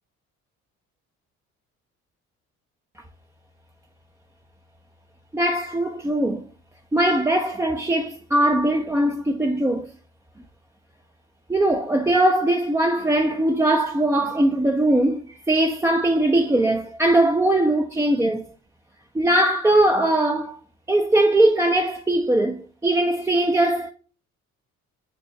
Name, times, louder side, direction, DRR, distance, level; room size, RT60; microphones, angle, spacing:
voice 1, 5.3-6.4 6.9-9.9 11.5-18.5 19.1-20.6 20.9-23.9, right 1 dB, 10° right, 0.4 m, -20 dB
6.2 x 2.1 x 2.6 m
supercardioid pair, 65°, 32 cm